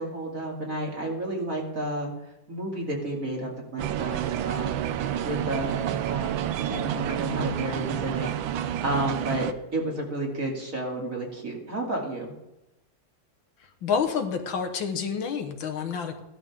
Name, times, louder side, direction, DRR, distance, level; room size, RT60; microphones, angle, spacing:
voice 1, 0.0-2.1 2.5-4.8 5.2-12.3, right 1 dB, 45° right, -1 dB, 3.0 m, -31 dB
sound 1, 3.8-9.5, right 10 dB, 85° right, 1.5 m, -29 dB
voice 2, 13.8-16.2, left 6 dB, 90° left, 6 dB, 2.1 m, -28 dB
16.0 x 12.0 x 3.7 m, 0.91 s
omnidirectional pair, 2.1 m